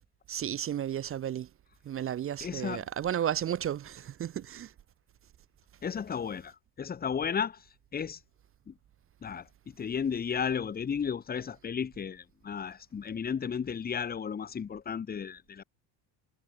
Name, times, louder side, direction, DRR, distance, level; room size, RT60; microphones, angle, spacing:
voice 1, 0.3-1.5 1.8-4.7, right 10 dB, 30° right, 0.5 m, -33 dB
voice 2, 2.4-2.9 5.8-7.7 7.9-8.2 8.7-8.8 9.2-15.6, left 7 dB, 20° left, 0.8 m, -34 dB
supercardioid pair, 85°, 48 cm